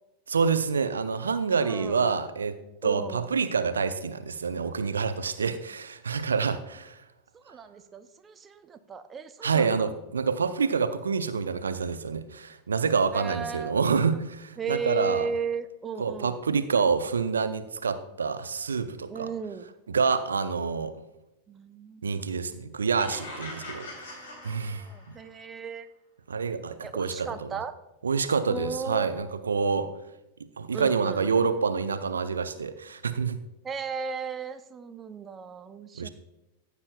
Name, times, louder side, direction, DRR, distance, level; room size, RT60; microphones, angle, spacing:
voice 1, 0.3-2.6 2.8-7.0 9.4-15.3 16.0-19.3 19.9-20.9 22.0-24.8 26.3-27.5 28.0-29.9 30.6-33.4 36.0-36.1, right 5 dB, 70° right, 11 dB, 0.6 m, -27 dB
voice 2, 1.6-2.0 2.8-3.4 7.3-10.0 13.1-13.8 14.6-16.4 19.1-19.7 21.5-22.0 22.8-22.9 23.7-25.9 26.8-27.8 28.5-29.3 30.7-31.3 33.6-36.1, right 5 dB, 20° right, 10 dB, 0.6 m, -36 dB
sound 1, 22.9-25.3, left 2 dB, 55° left, 3.4 m, -42 dB
15.0 x 8.3 x 2.3 m, 0.94 s
figure-of-eight pair, 90°, 0 cm